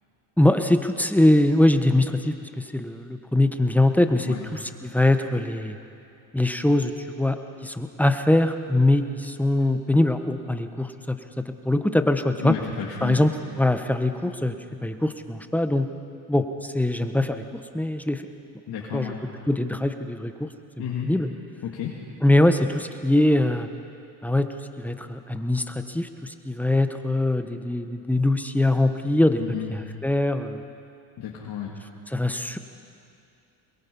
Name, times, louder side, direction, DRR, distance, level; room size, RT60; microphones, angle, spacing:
voice 1, 0.4-5.8 6.3-7.4 7.6-12.6 13.0-14.5 14.8-15.9 16.3-17.4 17.7-18.2 18.9-19.1 19.5-20.5 21.0-21.3 22.2-23.7 24.2-24.5 24.8-30.6 32.1-32.6, left 1 dB, 5° left, 7 dB, 1.3 m, -22 dB
voice 2, 12.4-13.2 18.7-19.2 20.8-21.1 21.6-22.0 29.4-29.7 31.2-31.8, left 9 dB, 60° left, -3 dB, 2.5 m, -32 dB
23.5 x 21.5 x 5.5 m, 2.6 s
supercardioid pair, 85°, 42 cm